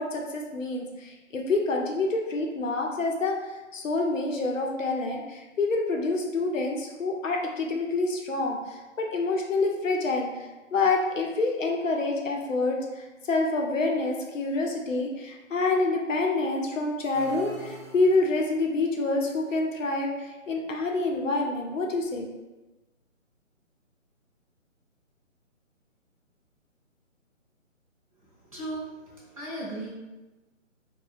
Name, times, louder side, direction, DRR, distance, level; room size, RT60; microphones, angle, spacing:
voice 1, 0.0-3.3 3.7-10.4 10.7-22.3, left 3 dB, 70° left, 1 dB, 0.7 m, -27 dB
sound 1, 17.1-18.7, right 1 dB, 25° left, 0.4 m, -45 dB
voice 2, 28.5-29.9, right 1 dB, 25° right, -6 dB, 0.6 m, -36 dB
2.7 x 2.2 x 3.3 m, 1.1 s
figure-of-eight pair, 150°, 40 cm